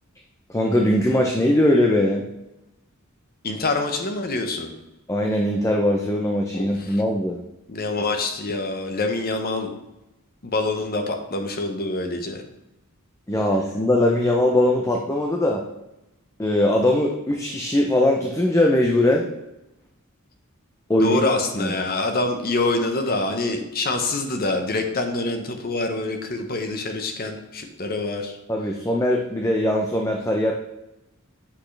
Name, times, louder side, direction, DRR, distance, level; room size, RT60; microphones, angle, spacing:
voice 1, 0.5-2.2 5.1-7.4 13.3-15.6 16.4-19.3 20.9-21.2 21.6-21.7 28.5-30.5, left 1 dB, 15° left, 0 dB, 0.6 m, -20 dB
voice 2, 3.4-4.7 6.5-7.0 7.7-9.7 10.4-12.4 21.0-28.4, left 2 dB, 45° left, 5 dB, 1.0 m, -26 dB
8.4 x 6.0 x 3.3 m, 0.93 s
head